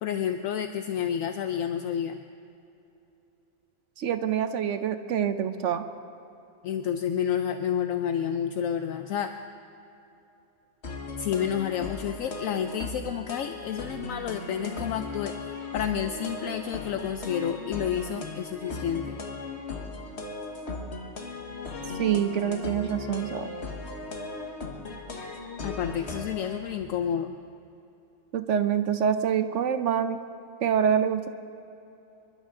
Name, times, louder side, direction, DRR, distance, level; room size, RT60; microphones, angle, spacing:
voice 1, 0.0-2.2 6.6-9.3 11.2-19.2 25.6-27.3, left 9 dB, 75° left, 7 dB, 1.0 m, -30 dB
voice 2, 4.0-5.8 22.0-23.5 28.3-30.2 30.6-31.3, right 8 dB, 65° right, 10 dB, 0.9 m, -26 dB
sound 1, 10.8-26.6, left 3 dB, 50° left, 1.6 m, -37 dB
26.0 x 12.0 x 3.7 m, 2.8 s
omnidirectional pair, 1.5 m